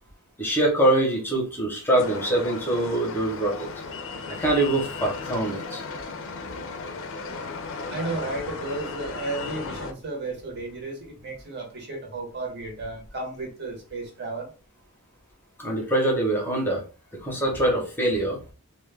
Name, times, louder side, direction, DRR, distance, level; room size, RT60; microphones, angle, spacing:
voice 1, 0.4-3.7 4.4-5.8 15.6-16.8 17.2-18.4, right 1 dB, 10° left, 0.7 m, -24 dB
sound 1, 1.9-9.9, left 4 dB, 60° left, 0.4 m, -35 dB
voice 2, 7.9-14.5, right 2 dB, 50° right, 0.9 m, -33 dB
2.2 x 2.1 x 3.3 m
head